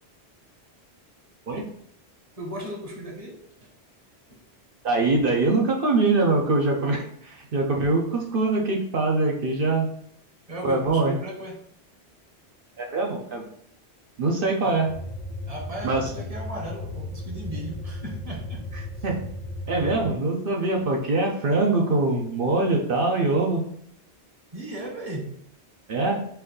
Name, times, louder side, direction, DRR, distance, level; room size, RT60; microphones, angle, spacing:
voice 1, 2.4-3.7 4.3-4.4 10.5-11.7 14.6-14.9 15.5-18.7 20.8-20.9 24.5-25.4, right 1 dB, 35° right, 0 dB, 1.0 m, -36 dB
voice 2, 4.8-9.9 10.6-11.1 12.8-13.4 14.2-14.9 15.8-16.1 19.0-19.2 19.7-23.6 25.9-26.2, right 3 dB, 60° right, 1 dB, 0.9 m, -23 dB
sound 1, 14.9-20.2, left 2 dB, 50° left, 0.9 m, -35 dB
4.5 x 2.6 x 3.8 m, 0.66 s
omnidirectional pair, 1.1 m